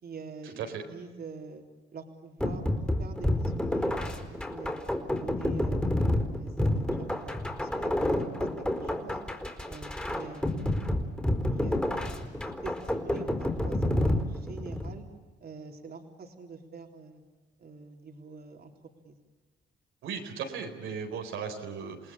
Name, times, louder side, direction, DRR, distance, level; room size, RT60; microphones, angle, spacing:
voice 1, 0.0-0.6 0.9-1.6 1.9-4.0 4.3-4.8 5.1-6.0 6.3-8.1 8.4-9.2 9.7-10.8 11.5-12.1 12.4-15.1 15.4-17.2 17.6-18.7 19.0-19.2, right 4 dB, 50° right, 3 dB, 3.7 m, -45 dB
sound 1, 2.4-15.0, left 1 dB, 5° left, 4.2 m, -29 dB
voice 2, 20.0-22.1, right 6 dB, 90° right, 2 dB, 4.4 m, -36 dB
29.0 x 19.0 x 8.7 m, 1.3 s
cardioid pair, 90°, 20 cm